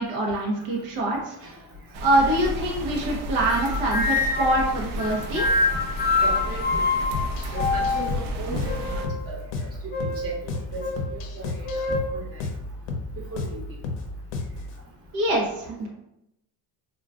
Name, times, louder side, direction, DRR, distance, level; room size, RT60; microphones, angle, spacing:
voice 1, 0.0-1.4 2.0-5.5 15.1-15.9, right 1 dB, 75° right, -2 dB, 0.9 m, -24 dB
sound 1, 1.9-9.1, equal, 50° right, 0.5 m, -32 dB
sound 2, 3.5-4.6 5.0-8.2 8.6-9.3 9.9-10.3 10.8-11.0 11.6-12.0, left 3 dB, 20° left, 0.5 m, -25 dB
voice 2, 6.1-6.8 7.5-9.4 10.2-10.4 10.7-10.8 11.1-11.6 12.1-12.4 13.3-13.6, right 2 dB, 30° right, -2 dB, 0.9 m, -35 dB
sound 3, 7.1-14.7, left 3 dB, 90° left, 0.6 m, -33 dB
3.7 x 2.3 x 2.3 m, 0.85 s
cardioid pair, 100°, 46 cm